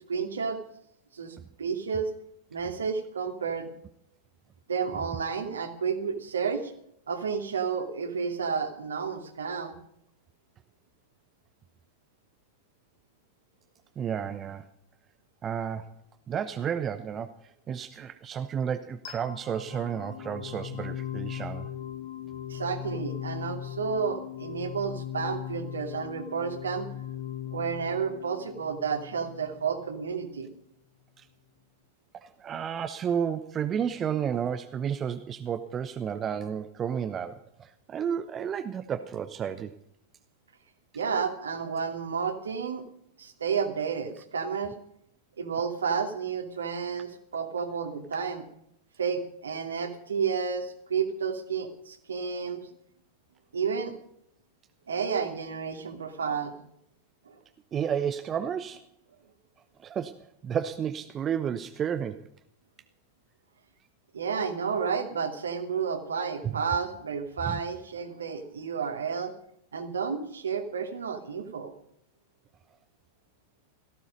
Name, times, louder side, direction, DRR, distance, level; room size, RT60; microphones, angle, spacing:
voice 1, 0.1-0.6 1.1-2.1 2.5-3.7 4.7-6.7 7.1-9.8 22.5-26.9 27.5-30.5 40.9-42.8 43.2-44.7 45.4-48.5 49.0-52.7 53.5-53.9 54.9-56.5 57.3-57.4 64.1-69.3 69.7-71.7, right 6 dB, 70° right, 5 dB, 2.6 m, -31 dB
voice 2, 14.0-14.7 15.4-15.9 16.3-21.7 31.2-31.3 32.1-39.8 57.7-58.8 59.8-62.3 66.4-66.5 67.5-67.6, right 8 dB, 25° right, 10 dB, 0.9 m, -32 dB
sound 1, 19.0-30.0, left 11 dB, 55° left, 1.3 m, -39 dB
17.5 x 15.0 x 5.3 m, 0.73 s
figure-of-eight pair, 90°, 0 cm